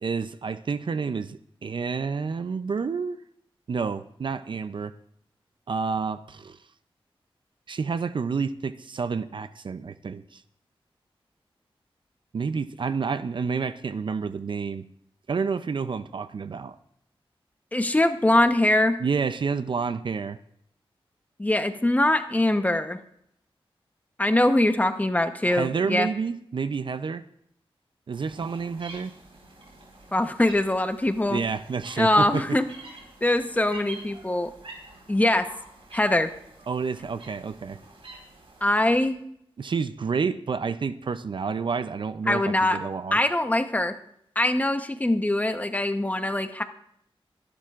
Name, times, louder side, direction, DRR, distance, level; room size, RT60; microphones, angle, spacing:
voice 1, 0.0-3.2 3.7-4.9 5.7-6.6 7.7-10.4 12.3-14.9 15.3-16.7 19.0-20.4 25.5-27.2 28.1-29.1 31.3-32.6 36.7-37.8 39.6-43.2, right 5 dB, 55° right, 12 dB, 0.5 m, -29 dB
voice 2, 17.7-19.0 21.4-23.0 24.2-26.1 30.1-31.4 32.0-32.6 33.2-34.5 35.1-35.5 35.9-36.3 38.6-39.2 42.3-42.8 43.1-43.9 44.4-46.6, left 1 dB, 15° left, 7 dB, 0.9 m, -22 dB
sound 1, 28.1-39.1, right 2 dB, 80° right, 4.3 m, -47 dB
25.0 x 12.0 x 2.5 m, 0.72 s
wide cardioid pair, 120°, 10 cm